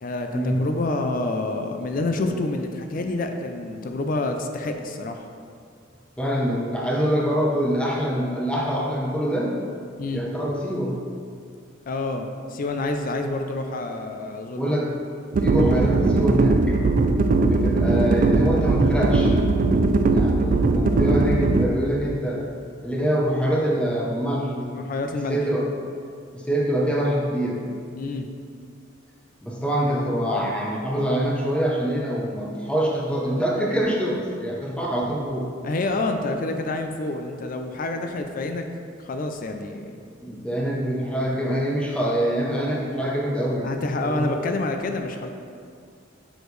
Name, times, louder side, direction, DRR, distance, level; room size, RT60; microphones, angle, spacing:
voice 1, 0.0-5.2 10.0-10.2 11.9-14.6 24.7-25.4 28.0-28.3 35.6-38.6 39.0-40.0 43.6-45.3, left 2 dB, 45° left, 5 dB, 0.4 m, -28 dB
voice 2, 6.2-9.5 10.1-11.0 14.5-14.9 15.4-16.8 17.4-19.4 19.9-22.5 22.8-24.7 25.1-25.7 26.3-27.7 29.4-35.5 40.2-44.5, equal, 5° left, -2 dB, 0.7 m, -25 dB
sound 1, 15.3-21.7, right 3 dB, 45° right, 0.3 m, -19 dB
6.3 x 5.0 x 3.1 m, 2.3 s
head